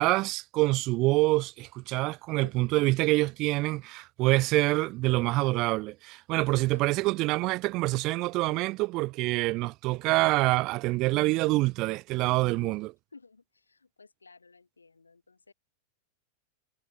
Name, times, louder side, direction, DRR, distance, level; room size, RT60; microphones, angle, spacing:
voice 1, 0.0-12.9, right 21 dB, 40° right, 0.7 m, -26 dB
voice 2, 6.7-7.2 12.5-12.8 13.1-15.5, left 4 dB, 80° left, 3.4 m, -53 dB
figure-of-eight pair, 90°, 0 cm